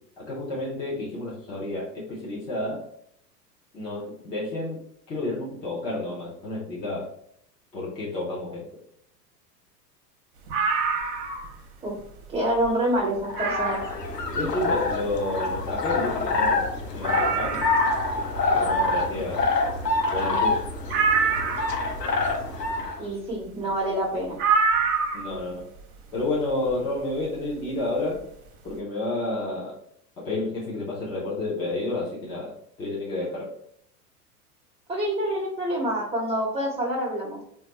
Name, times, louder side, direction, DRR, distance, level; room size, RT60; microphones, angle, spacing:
voice 1, 0.2-2.8 3.7-4.8 5.1-7.1 7.7-8.6 14.3-17.6 18.5-19.5 20.1-20.6 25.1-25.7 26.1-28.3 28.6-29.8 30.2-33.5, left 2 dB, 10° left, -6 dB, 0.3 m, -30 dB
sound 1, 10.5-11.5 12.0-12.1 12.6-12.7 13.3-13.9 15.7-15.8 16.0-16.1 16.5-16.6 17.0-18.1 20.9-21.8 24.4-25.4 26.7-26.8, right 5 dB, 45° right, 0.7 m, -25 dB
voice 2, 12.3-13.8 23.0-24.4 34.9-37.4, right 1 dB, 10° right, -5 dB, 0.7 m, -27 dB
sound 2, 13.2-23.0, left 3 dB, 85° left, 0.7 m, -26 dB
3.9 x 2.2 x 2.9 m, 0.71 s
figure-of-eight pair, 90°, 48 cm